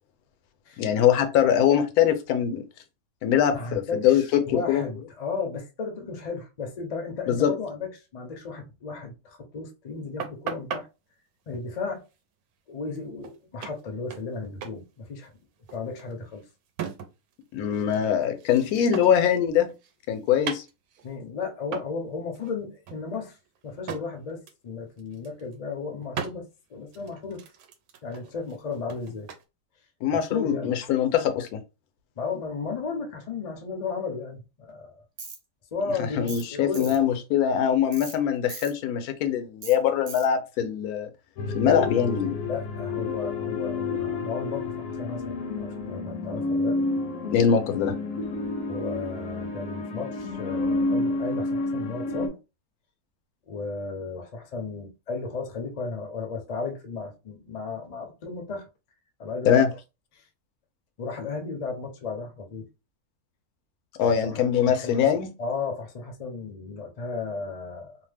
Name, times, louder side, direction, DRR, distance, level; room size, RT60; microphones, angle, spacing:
voice 1, 0.8-2.6 3.2-4.8 7.3-7.5 17.5-19.7 20.1-20.6 30.0-31.6 36.0-41.1 41.5-42.4 47.3-48.0 59.4-59.7 64.0-65.3, left 9 dB, 85° left, 1.1 m, -23 dB
voice 2, 3.5-10.9 11.5-12.0 12.7-15.3 15.7-16.4 21.0-23.4 23.6-27.4 28.0-29.3 30.1-30.8 32.2-35.0 35.7-36.9 41.6-42.1 42.5-46.8 48.7-52.4 53.5-58.7 59.2-59.6 60.1-60.2 61.0-62.7 64.0-65.1 65.4-68.0, left 4 dB, 50° left, 0.4 m, -34 dB
sound 1, 10.2-10.8 12.9-13.0 13.2-13.4 13.6-14.3 14.6-14.8 15.1-17.3 17.6-19.3 19.7-21.1 21.7-22.0 22.3-22.5 22.9-24.1 24.5-24.7 25.0-25.5 26.1-26.4 26.9-29.4, right 7 dB, 80° right, 1.1 m, -38 dB
Tools, 35.2-35.4 36.3-36.5 36.7-37.0 37.9-38.2 38.5-38.7 39.6-39.8 40.1-40.3, right 4 dB, 45° right, 0.8 m, -39 dB
sound 2, 41.4-52.3, left 3 dB, 65° left, 0.8 m, -30 dB
2.7 x 2.0 x 3.3 m
omnidirectional pair, 1.6 m